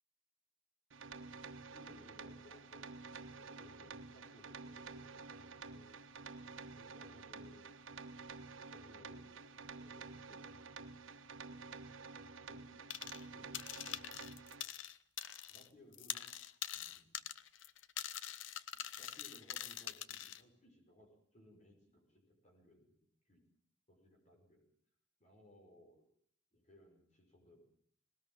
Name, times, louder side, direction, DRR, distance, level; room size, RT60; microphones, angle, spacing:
sound 1, 0.9-14.6, right 4 dB, 75° right, 1.4 m, -50 dB
voice 1, 1.7-5.9 6.8-7.7 8.7-10.4 12.5-14.1 15.5-16.4 16.7-17.2 18.7-23.4 23.9-24.7 25.2-26.1 26.5-27.7, left 1 dB, 35° left, 1 dB, 5.7 m, -64 dB
sound 2, 12.9-13.3 13.5-15.7 15.9-20.4, left 11 dB, 70° left, 0.9 m, -44 dB
19.5 x 19.0 x 8.9 m, 0.63 s
head